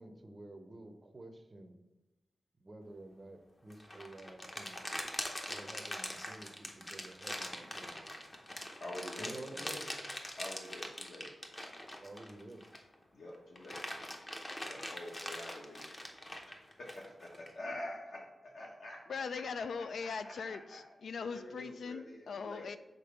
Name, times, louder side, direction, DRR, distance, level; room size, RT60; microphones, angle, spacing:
voice 1, 0.0-1.8 2.6-4.8 5.5-8.3 9.2-9.9 12.0-12.6, right 2 dB, 25° right, 6 dB, 0.6 m, -51 dB
sound 1, 3.7-12.9 13.3-17.5, left 1 dB, 20° left, 0.7 m, -43 dB
voice 2, 8.8-9.8 10.4-11.3 13.1-13.8 14.6-15.9 16.5-19.4 19.8-20.9 21.3-22.7, left 1 dB, 60° left, -1 dB, 1.1 m, -47 dB
voice 3, 19.1-22.8, left 5 dB, 80° left, 11 dB, 0.4 m, -40 dB
5.2 x 4.1 x 5.7 m, 1.0 s
wide cardioid pair, 170°, 0 cm